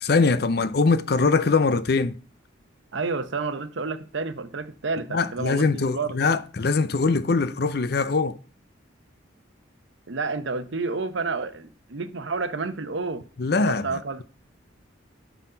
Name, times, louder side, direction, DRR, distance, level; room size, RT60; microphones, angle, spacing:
voice 1, 0.0-2.2 5.1-8.4 13.4-14.2, left 4 dB, 50° left, 0.5 m, -22 dB
voice 2, 2.9-6.2 10.1-13.3 13.6-14.2, right 4 dB, 70° right, 0.8 m, -30 dB
11.5 x 4.1 x 5.5 m
head